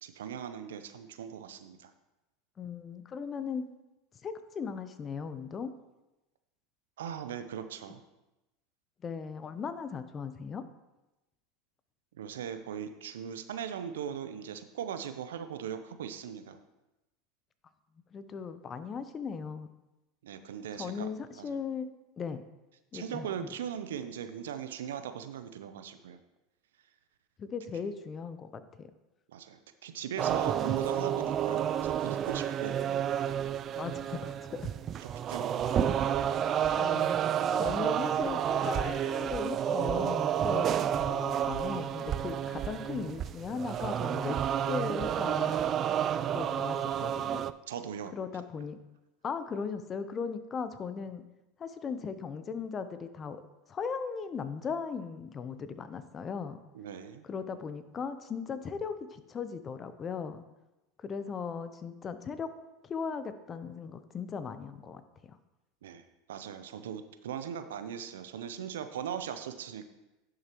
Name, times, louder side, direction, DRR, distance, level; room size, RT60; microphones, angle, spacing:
voice 1, 0.0-1.9 7.0-8.0 12.2-16.6 20.2-21.1 21.4-21.6 22.9-26.2 29.3-32.8 35.3-35.7 47.7-48.1 56.7-57.2 65.8-66.0 66.3-69.9, right 8 dB, 75° right, 10 dB, 0.6 m, -39 dB
voice 2, 2.6-3.6 4.2-5.7 9.0-10.6 18.1-19.7 20.7-21.9 22.2-22.4 22.9-23.5 27.4-28.9 33.7-34.7 35.8-36.0 36.7-37.2 37.5-45.6 46.3-47.4 48.1-48.8 49.2-51.2 51.6-53.4 53.7-56.6 57.2-60.4 61.0-62.5 62.8-65.0, left 6 dB, 30° left, 11 dB, 0.7 m, -38 dB
sound 1, 30.2-47.5, right 9 dB, 40° right, 0.3 m, -30 dB
11.0 x 6.5 x 3.0 m, 1.0 s
hypercardioid pair, 85°, 0 cm